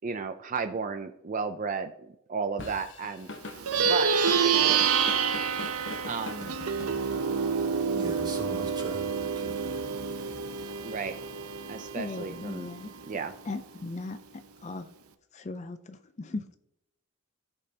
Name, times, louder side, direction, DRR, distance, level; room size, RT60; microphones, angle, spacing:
voice 1, 0.0-3.3 3.8-4.1 4.4-4.8 6.1-6.6 10.8-11.1 11.7-12.7 13.0-13.3, right 5 dB, 35° right, 8 dB, 0.4 m, -34 dB
Drum kit / Drum, 2.6-7.4, left 2 dB, 55° left, 1.0 m, -42 dB
Plucked string instrument, 3.5-13.2, right 6 dB, 85° right, 0.7 m, -28 dB
voice 2, 7.9-10.8, right 1 dB, 20° right, 3 dB, 1.3 m, -42 dB
voice 3, 11.9-12.9 13.5-14.2 14.6-14.9 15.3-16.6, left 3 dB, 30° left, 10 dB, 0.4 m, -37 dB
16.0 x 5.3 x 2.8 m, 0.82 s
head